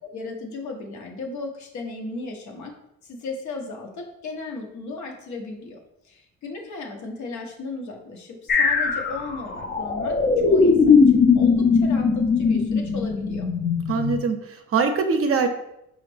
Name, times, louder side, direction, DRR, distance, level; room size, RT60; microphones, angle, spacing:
voice 1, 0.0-2.7 3.0-5.8 6.0-13.5, left 3 dB, 70° left, 2 dB, 0.9 m, -36 dB
sound 1, 8.5-14.2, left 5 dB, 35° left, 0.5 m, -19 dB
voice 2, 13.9-15.5, right 5 dB, 50° right, 6 dB, 0.6 m, -23 dB
5.0 x 2.4 x 3.3 m, 0.81 s
cardioid pair, 90°, 30 cm